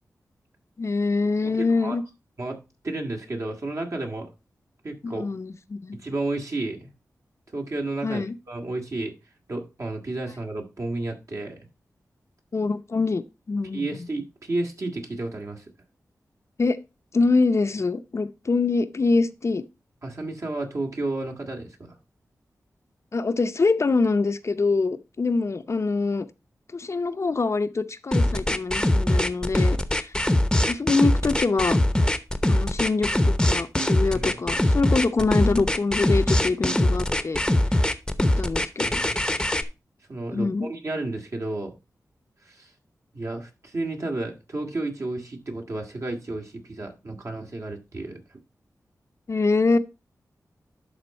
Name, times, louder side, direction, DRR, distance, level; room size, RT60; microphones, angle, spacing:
voice 1, 0.8-2.0 5.0-6.0 8.0-8.3 12.5-13.2 13.5-14.0 16.6-16.8 17.1-19.6 23.1-26.3 26.7-30.1 30.7-31.8 32.5-37.4 38.4-39.0 40.3-40.7 49.3-49.8, left 3 dB, 50° left, 0.7 m, -24 dB
voice 2, 1.4-2.0 2.4-2.6 2.8-4.3 4.8-5.3 5.9-6.9 7.5-9.1 9.5-11.6 13.7-15.7 20.0-22.0 34.1-34.3 38.8-39.2 40.1-41.7 42.4-42.7 43.1-48.2, right 2 dB, 55° right, 2.1 m, -32 dB
sound 1, 28.1-39.6, left 1 dB, 10° left, 0.8 m, -22 dB
11.5 x 3.8 x 4.4 m
wide cardioid pair, 70°, 6 cm